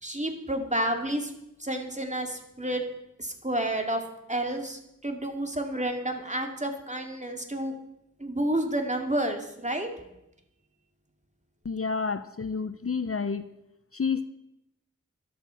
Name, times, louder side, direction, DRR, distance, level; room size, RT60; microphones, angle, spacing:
voice 1, 0.0-1.3 1.6-2.8 3.2-4.0 4.3-7.7 8.2-9.9, right 1 dB, 25° right, 4 dB, 2.4 m, -30 dB
voice 2, 11.6-13.4 13.9-14.3, left 5 dB, 45° left, 11 dB, 0.8 m, -29 dB
14.0 x 11.5 x 5.7 m, 0.85 s
wide cardioid pair, 45°, 31 cm